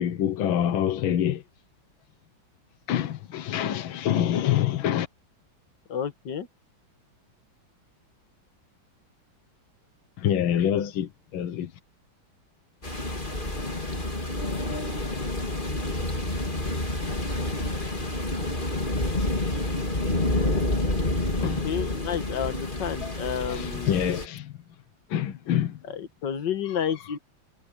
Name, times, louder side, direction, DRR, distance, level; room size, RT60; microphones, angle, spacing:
voice 1, 0.0-1.4 2.9-5.1 10.2-11.7 21.4-21.8 23.0-23.1 23.5-24.5 25.1-25.8 26.7-27.0, left 10 dB, 80° left, 1.8 m, -26 dB
voice 2, 5.9-6.5 21.4-23.9 25.9-27.2, left 8 dB, 60° left, 2.2 m, -31 dB
sound 1, 12.8-24.3, left 2 dB, 25° left, 3.5 m, -28 dB
omnidirectional pair, 2.2 m